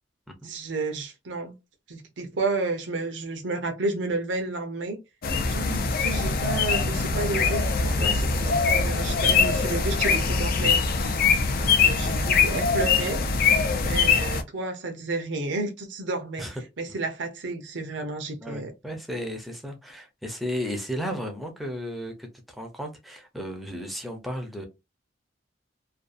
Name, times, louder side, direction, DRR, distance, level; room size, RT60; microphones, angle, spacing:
voice 1, 0.4-1.5 1.9-5.0 5.5-10.8 11.6-13.3 13.7-16.5 16.8-18.7, right 3 dB, 80° right, 0.7 m, -31 dB
sound 1, 5.2-14.4, left 5 dB, 55° left, 0.4 m, -23 dB
voice 2, 18.4-24.7, equal, ahead, 0.5 m, -34 dB
2.6 x 2.3 x 2.4 m
head